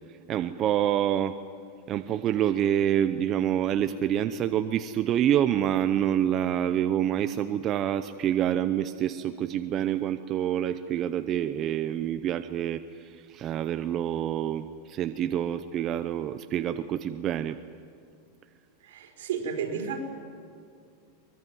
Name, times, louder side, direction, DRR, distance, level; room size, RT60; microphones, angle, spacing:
voice 1, 0.1-1.4 1.9-17.6, right 10 dB, 30° right, 10 dB, 0.7 m, -27 dB
voice 2, 18.8-20.0, right 6 dB, 80° right, 2 dB, 4.8 m, -32 dB
23.5 x 21.5 x 9.4 m, 2.3 s
supercardioid pair, 160°, 0 cm